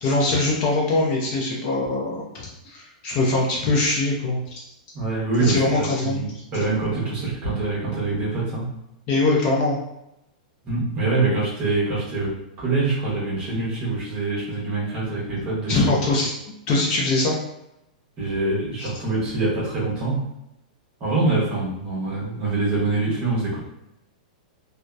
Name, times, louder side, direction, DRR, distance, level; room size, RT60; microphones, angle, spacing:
voice 1, 0.0-4.6 5.4-6.3 9.1-9.8 15.3-15.4 15.7-16.3 16.7-17.4 18.8-18.9, left 2 dB, 30° left, -3 dB, 0.5 m, -22 dB
voice 2, 4.9-8.7 10.6-15.8 18.2-20.2 21.0-23.6, right 3 dB, 25° right, -6 dB, 0.9 m, -25 dB
2.6 x 2.1 x 2.3 m, 0.85 s
supercardioid pair, 165°, 4 cm